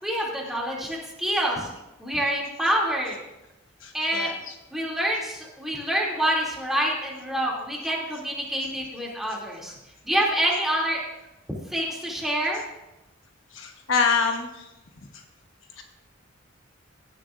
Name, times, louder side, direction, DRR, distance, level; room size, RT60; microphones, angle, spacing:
voice 1, 0.0-1.7 2.0-3.1 3.9-4.4 4.7-9.7 10.0-11.0 11.7-12.6, right 1 dB, ahead, -4 dB, 2.6 m, -27 dB
voice 2, 3.8-4.3 13.5-14.5 15.8-15.9, left 5 dB, 70° left, 4 dB, 1.2 m, -25 dB
17.5 x 10.5 x 2.5 m, 0.97 s
head